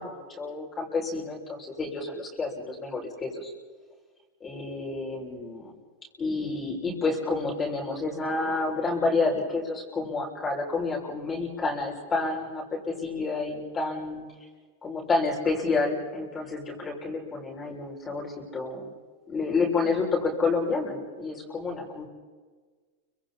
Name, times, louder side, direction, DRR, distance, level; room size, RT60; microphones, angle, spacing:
voice 1, 0.0-3.5 4.4-5.7 6.2-14.3 14.8-18.8 19.3-22.0, left 3 dB, 20° left, -2 dB, 6.7 m, -29 dB
30.0 x 25.5 x 4.4 m, 1.4 s
hypercardioid pair, 125°, 0 cm